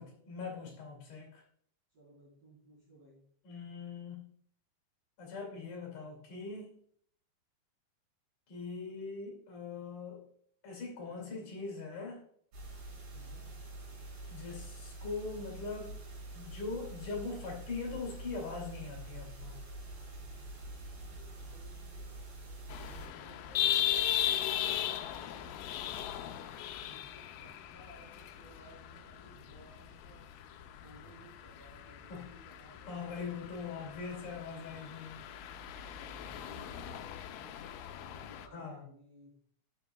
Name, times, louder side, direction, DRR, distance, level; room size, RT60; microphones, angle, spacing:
voice 1, 0.0-1.4 3.4-4.3 5.2-6.8 8.5-10.2 10.6-12.3 14.3-16.0 16.3-19.6 32.1-32.3 32.9-35.2 38.5-38.8, left 4 dB, 55° left, 0 dB, 3.7 m, -41 dB
voice 2, 1.9-3.2 11.0-11.6 13.1-13.5 20.9-25.5 26.8-30.2 30.8-34.9 35.9-39.3, right 2 dB, 40° right, -7 dB, 4.7 m, -59 dB
sound 1, 12.5-23.1, right 2 dB, 75° right, 5.9 m, -46 dB
sound 2, 22.7-38.5, left 11 dB, 85° left, 1.9 m, -38 dB
10.5 x 8.0 x 2.3 m, 0.65 s
omnidirectional pair, 4.5 m